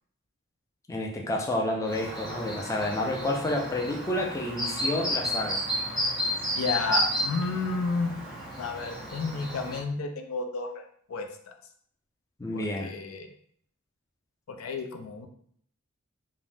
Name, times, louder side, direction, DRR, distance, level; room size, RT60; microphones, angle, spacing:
voice 1, 0.9-5.6 12.4-13.0, left 1 dB, 15° left, 0 dB, 0.3 m, -30 dB
Chirp tweet, 1.8-9.8, equal, 5° right, 0.7 m, -32 dB
voice 2, 6.6-8.2 8.6-11.3 12.5-13.3 14.5-15.3, left 4 dB, 90° left, 5 dB, 0.4 m, -31 dB
2.6 x 2.0 x 3.3 m, 0.62 s
head